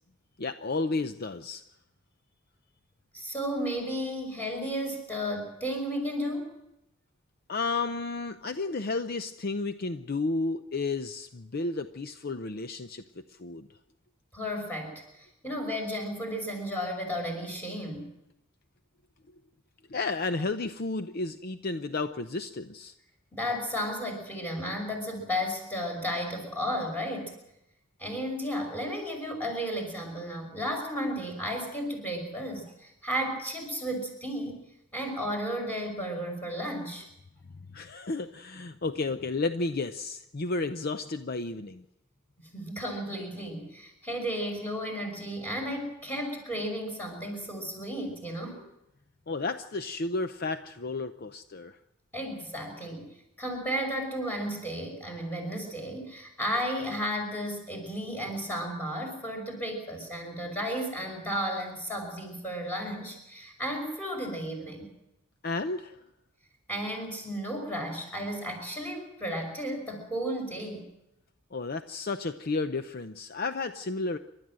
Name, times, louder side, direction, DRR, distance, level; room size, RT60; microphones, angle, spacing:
voice 1, 0.4-1.6 7.5-13.0 13.4-13.7 19.9-22.9 37.7-41.8 49.3-51.8 65.4-66.0 71.5-74.2, left 3 dB, 45° left, 10 dB, 0.6 m, -32 dB
voice 2, 3.1-6.5 14.3-18.1 23.3-27.4 28.0-34.6 34.9-37.1 42.5-48.6 52.1-53.1 53.4-64.9 66.7-70.9, equal, 10° left, 1 dB, 5.9 m, -33 dB
28.5 x 12.5 x 7.6 m, 0.87 s
head